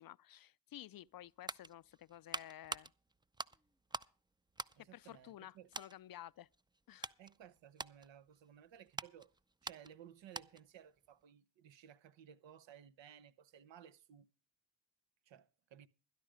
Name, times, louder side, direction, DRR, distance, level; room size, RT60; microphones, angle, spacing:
voice 1, 0.0-2.9 4.8-6.5 6.9-7.1, left 12 dB, 50° left, 0.5 m, -53 dB
sound 1, 1.0-4.2 4.5-5.4 5.7-6.0 6.5-10.8 11.1-11.2, right 2 dB, 10° right, 0.5 m, -47 dB
voice 2, 4.7-5.7 7.2-9.3 9.6-14.3 15.3-15.9, right 9 dB, 65° right, 1.0 m, -58 dB
13.0 x 10.5 x 5.0 m
hypercardioid pair, 45°, 47 cm